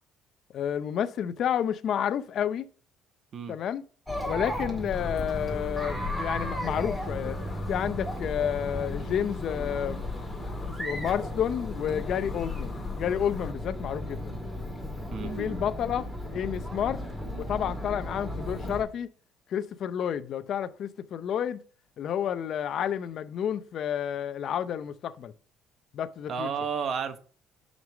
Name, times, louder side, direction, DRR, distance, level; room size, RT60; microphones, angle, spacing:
voice 1, 0.5-2.7 3.5-3.8 4.3-7.4 7.7-10.0 10.8-14.3 15.2-16.1 16.3-17.0 17.4-19.1 19.5-21.6 22.0-25.3 25.9-26.5, left 9 dB, 55° left, 0.6 m, -30 dB
Chatter, 4.1-18.8, equal, 5° right, 2.0 m, -35 dB
sound 1, 4.9-13.5, left 6 dB, 30° left, 1.2 m, -42 dB
voice 2, 15.1-15.6 26.3-27.2, right 6 dB, 45° right, 0.9 m, -32 dB
6.3 x 5.3 x 6.1 m
cardioid pair, 130°, 0 cm